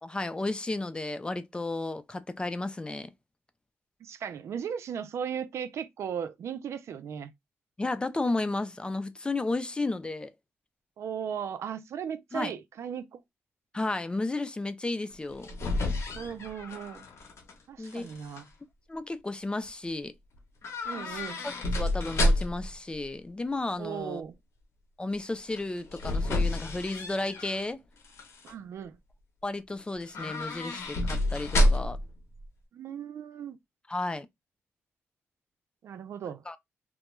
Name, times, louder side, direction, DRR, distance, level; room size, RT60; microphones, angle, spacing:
voice 1, 0.0-3.1 7.8-10.3 12.3-12.5 13.7-15.5 17.8-18.1 18.9-20.1 21.1-24.2 25.0-27.8 29.4-32.0 33.9-34.3 36.5-36.6, left 2 dB, 20° left, 0.4 m, -33 dB
voice 2, 4.0-7.3 11.0-13.2 16.1-17.1 17.7-18.5 20.9-21.4 23.8-24.3 28.4-29.0 32.7-33.6 35.8-36.4, right 8 dB, 75° right, 0.4 m, -37 dB
sound 1, 15.1-17.5 17.8-18.4 20.6-22.7 25.5-27.6 28.0-28.5 30.0-32.1 32.4-32.5, left 1 dB, 75° left, 0.7 m, -29 dB
2.2 x 2.1 x 3.0 m
cardioid pair, 80°, 5 cm